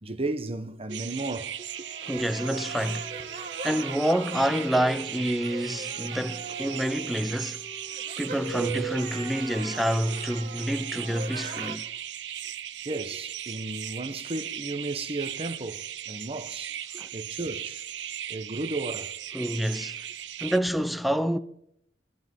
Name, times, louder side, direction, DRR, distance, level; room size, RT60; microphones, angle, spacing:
voice 1, 0.0-1.9 8.6-8.9 12.8-16.8 17.1-17.9 18.3-19.2, right 2 dB, 35° right, 1.0 m, -34 dB
sound 1, 0.9-20.6, right 10 dB, 85° right, 0.6 m, -38 dB
sound 2, 1.5-11.8, right 3 dB, 50° right, 1.6 m, -40 dB
voice 2, 2.0-3.2 3.6-7.7 8.2-11.9 17.0-17.1 19.3-20.1 20.4-21.4, equal, ahead, 0.7 m, -28 dB
24.5 x 14.5 x 3.7 m
head